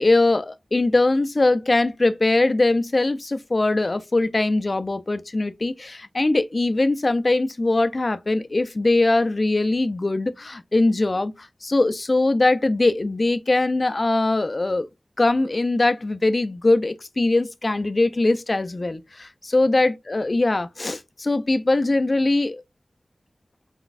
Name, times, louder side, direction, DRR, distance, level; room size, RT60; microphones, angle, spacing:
voice 1, 0.0-14.9 15.2-22.6, left 2 dB, 50° left, 0.5 m, -21 dB
4.4 x 4.0 x 2.5 m
wide cardioid pair, 50°, 0 cm